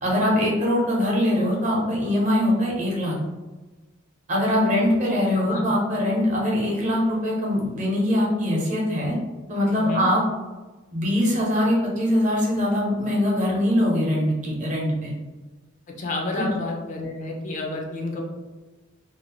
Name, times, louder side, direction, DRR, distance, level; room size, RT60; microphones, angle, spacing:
voice 1, 0.0-3.2 4.3-9.2 9.5-10.2 10.9-15.1 16.4-16.5, left 1 dB, 40° right, -3 dB, 0.7 m, -22 dB
voice 2, 16.0-18.2, left 2 dB, 40° left, 0 dB, 0.4 m, -30 dB
2.6 x 2.0 x 2.9 m, 1.2 s
head